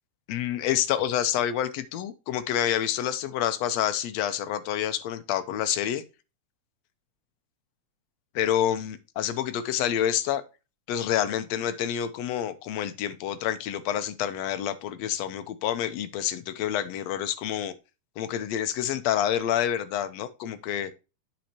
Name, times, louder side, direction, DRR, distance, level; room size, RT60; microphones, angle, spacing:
voice 1, 0.3-6.0 8.4-10.4 10.9-17.7 18.2-20.9, left 10 dB, 70° left, 1.8 m, -28 dB
9.0 x 6.4 x 2.9 m
omnidirectional pair, 3.5 m